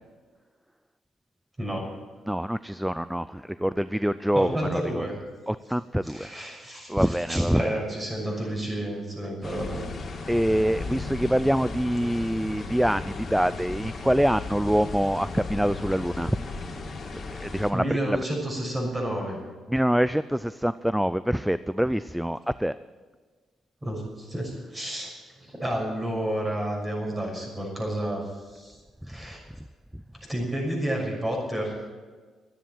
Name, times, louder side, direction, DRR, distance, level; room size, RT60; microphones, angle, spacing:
voice 1, 1.6-2.0 4.3-5.2 6.0-9.8 17.7-19.4 23.8-28.8 29.1-29.4 30.2-31.7, right 1 dB, 20° right, -1 dB, 6.4 m, -31 dB
voice 2, 2.3-5.1 5.5-6.3 6.9-7.7 10.3-16.4 17.4-18.2 19.7-22.8, equal, 5° right, 15 dB, 0.4 m, -25 dB
sound 1, 9.4-17.7, left 3 dB, 40° left, 2.6 m, -36 dB
13.0 x 9.8 x 9.1 m, 1.4 s
cardioid pair, 90°, 0 cm